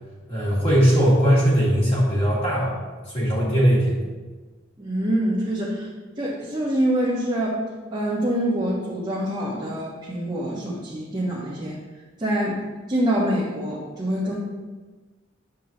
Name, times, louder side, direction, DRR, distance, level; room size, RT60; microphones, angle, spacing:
voice 1, 0.3-2.8 3.0-4.0, equal, 30° left, -8 dB, 2.6 m, -19 dB
voice 2, 4.8-5.9 6.2-7.6 7.9-11.8 12.2-12.6 12.9-14.4, right 1 dB, 20° right, -8 dB, 1.4 m, -25 dB
9.6 x 7.3 x 3.0 m, 1.3 s
head